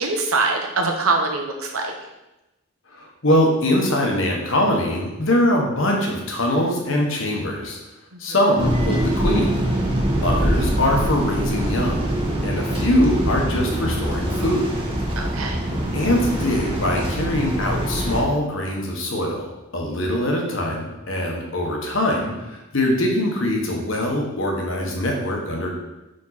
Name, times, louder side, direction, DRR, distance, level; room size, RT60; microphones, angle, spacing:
voice 1, 0.0-1.9 8.1-8.2 15.2-15.6, right 3 dB, 85° right, 3 dB, 1.0 m, -23 dB
voice 2, 2.9-7.8 8.2-9.6 10.2-12.1 12.4-14.8 15.9-25.7, left 1 dB, 65° left, 0 dB, 1.3 m, -22 dB
sound 1, 8.6-18.2, right 1 dB, 25° right, 1.2 m, -23 dB
5.3 x 5.2 x 4.2 m, 0.98 s
head